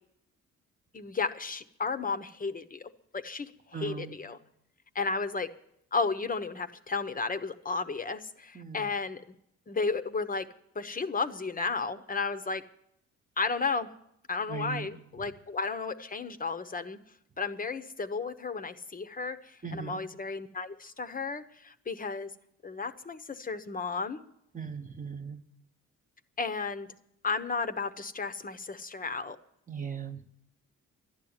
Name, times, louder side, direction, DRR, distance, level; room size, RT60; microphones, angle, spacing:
voice 1, 0.9-4.4 4.9-5.5 5.9-9.2 9.7-10.5 10.7-12.6 13.4-13.9 14.3-17.0 17.4-22.3 22.6-24.2 26.4-26.9 27.2-29.4, left 4 dB, 30° left, 10 dB, 0.9 m, -33 dB
voice 2, 3.7-4.2 8.5-8.9 14.5-14.9 19.6-20.0 24.5-25.4 29.7-30.2, right 6 dB, 25° right, 4 dB, 1.1 m, -38 dB
12.0 x 11.5 x 8.9 m, 0.77 s
cardioid pair, 90°, 30 cm